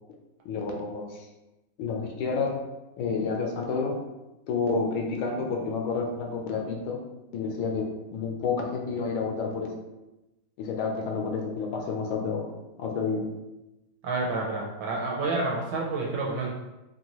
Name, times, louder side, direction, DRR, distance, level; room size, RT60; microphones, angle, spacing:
voice 1, 0.4-1.3 1.8-2.6 3.0-4.0 4.5-7.0 7.3-9.7 10.6-12.5 12.8-13.2, left 4 dB, 75° left, 2 dB, 1.4 m, -29 dB
voice 2, 14.0-16.5, right 3 dB, 70° right, -3 dB, 1.4 m, -29 dB
4.5 x 2.6 x 2.9 m, 0.99 s
omnidirectional pair, 2.3 m